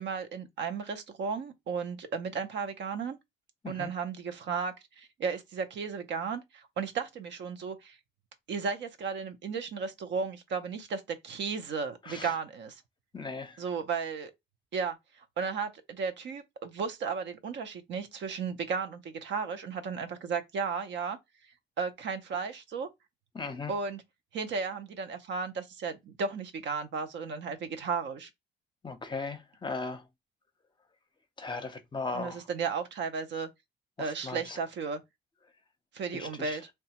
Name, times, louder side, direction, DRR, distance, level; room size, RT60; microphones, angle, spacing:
voice 1, 0.0-3.2 3.7-8.0 8.5-12.8 13.6-14.3 14.7-15.0 15.4-21.2 21.8-22.9 23.7-24.0 24.3-28.3 32.1-33.5 34.0-35.0 35.9-36.7, right 5 dB, 65° right, 0.6 m, -34 dB
voice 2, 13.1-13.6 23.3-23.7 28.8-30.0 31.4-32.4 34.0-34.6 36.1-36.6, left 4 dB, 25° left, 0.6 m, -37 dB
2.9 x 2.3 x 2.8 m
cardioid pair, 90°, 20 cm